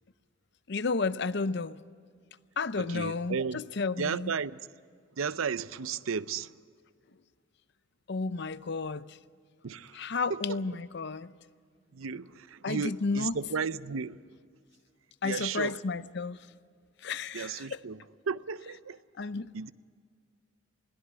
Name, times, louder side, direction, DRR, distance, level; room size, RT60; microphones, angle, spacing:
voice 1, 0.7-1.8 2.6-4.3 8.1-9.0 9.9-11.3 12.6-13.4 15.2-16.4 17.0-17.8 19.2-19.5, left 4 dB, 55° left, 0.6 m, -32 dB
voice 2, 2.8-3.6 4.0-4.6 5.2-6.5 9.6-10.6 11.9-14.2 15.2-15.8 17.3-18.0 18.3-19.0 19.5-19.7, right 5 dB, 90° right, 0.6 m, -34 dB
21.5 x 16.5 x 9.6 m
head